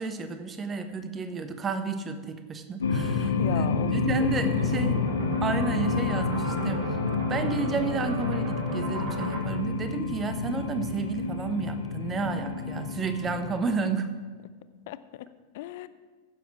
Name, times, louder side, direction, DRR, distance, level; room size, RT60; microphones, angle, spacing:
voice 1, 0.0-5.0 5.4-6.9 7.3-14.1, right 4 dB, 20° right, 9 dB, 1.1 m, -31 dB
sound 1, 2.8-13.7, left 4 dB, 70° left, 1.1 m, -29 dB
voice 2, 3.1-4.0 4.3-4.7 14.9-15.3 15.5-15.9, left 14 dB, 50° left, 14 dB, 0.5 m, -37 dB
sound 2, 4.4-9.4, right 2 dB, 50° right, 2.8 m, -38 dB
15.0 x 7.3 x 4.7 m, 1.4 s
figure-of-eight pair, 90°, 0 cm